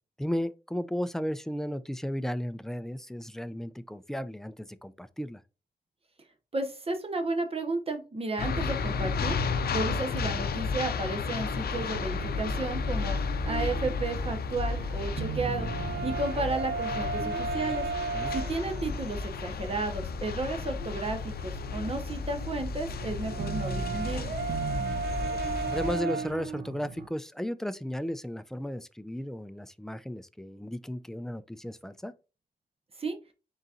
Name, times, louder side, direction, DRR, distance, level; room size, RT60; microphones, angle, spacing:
voice 1, 0.2-5.4 18.1-18.3 25.0-25.4 25.7-32.1, equal, 5° left, 0.4 m, -34 dB
voice 2, 6.5-9.4 9.7-13.2 13.4-15.7 16.0-17.9 18.3-24.3 33.0-33.2, right 2 dB, 35° right, 1.0 m, -33 dB
sound 1, 8.4-26.0, left 4 dB, 70° left, 0.5 m, -33 dB
sound 2, 11.7-27.1, right 5 dB, 80° right, 0.6 m, -36 dB
4.0 x 3.9 x 2.4 m
wide cardioid pair, 95°, 17 cm